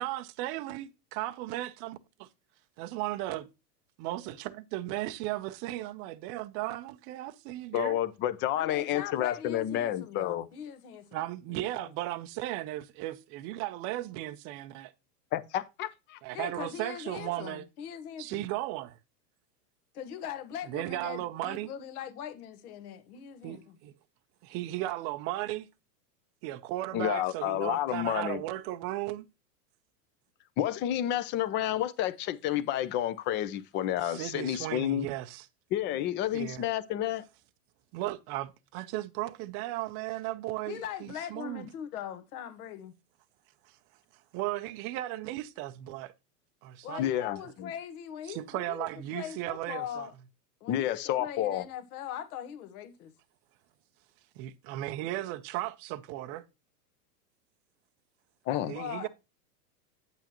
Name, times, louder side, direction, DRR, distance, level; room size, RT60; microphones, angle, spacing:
voice 1, 0.0-2.3 2.8-3.5 4.0-8.0 11.1-14.9 16.2-17.6 18.2-19.0 20.7-21.7 23.4-23.9 24.4-25.7 26.4-29.3 34.0-35.5 36.3-36.7 37.9-41.7 44.3-46.1 46.6-47.0 48.3-50.1 54.4-56.4 58.7-59.1, right 16 dB, 30° right, 0.5 m, -36 dB
voice 2, 7.7-10.5 15.3-16.2 26.9-28.4 30.6-35.1 35.7-37.3 47.0-47.7 50.7-51.6 58.5-58.7, left 12 dB, 25° left, 0.5 m, -30 dB
voice 3, 8.6-11.1 11.5-11.9 16.3-18.4 19.9-23.8 35.9-36.2 40.7-42.9 46.8-50.1 50.6-53.1 58.5-59.1, left 9 dB, 65° left, 1.5 m, -41 dB
8.9 x 8.2 x 2.9 m
hypercardioid pair, 135°, 48 cm